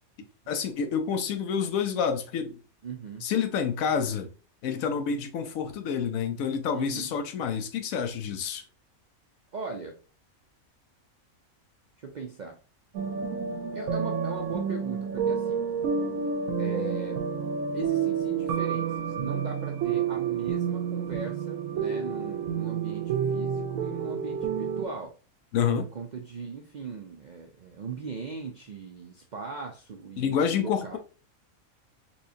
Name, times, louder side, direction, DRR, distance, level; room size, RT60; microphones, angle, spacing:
voice 1, 0.5-2.6 3.2-4.3 4.6-8.6 25.5-25.9 30.2-31.0, left 7 dB, 80° left, 1.1 m, -28 dB
voice 2, 2.8-3.2 6.7-7.1 9.5-10.0 12.0-12.6 13.7-15.6 16.6-17.2 17.7-25.1 25.7-31.0, right 4 dB, 65° right, 0.4 m, -39 dB
sound 1, 12.9-24.9, right 7 dB, 85° right, 1.0 m, -29 dB
4.3 x 3.1 x 2.7 m
omnidirectional pair, 1.4 m